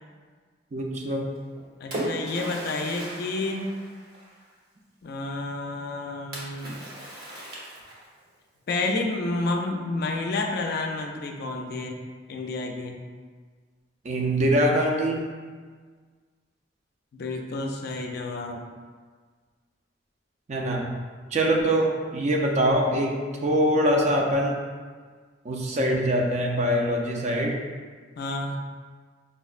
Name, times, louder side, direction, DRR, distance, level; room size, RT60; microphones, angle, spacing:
voice 1, 0.7-1.3 14.0-15.3 20.5-20.9 21.3-23.1 23.4-24.6 25.4-27.6, equal, 40° right, 0 dB, 0.4 m, -23 dB
Splash splatter, 1.3-4.5 6.3-8.3, right 1 dB, 60° right, 1.0 m, -37 dB
voice 2, 1.8-3.7 5.0-6.9 8.7-12.0 12.3-13.0 17.1-18.6 28.2-28.6, left 2 dB, 60° left, 2 dB, 0.4 m, -30 dB
5.4 x 2.1 x 2.4 m, 1.5 s
head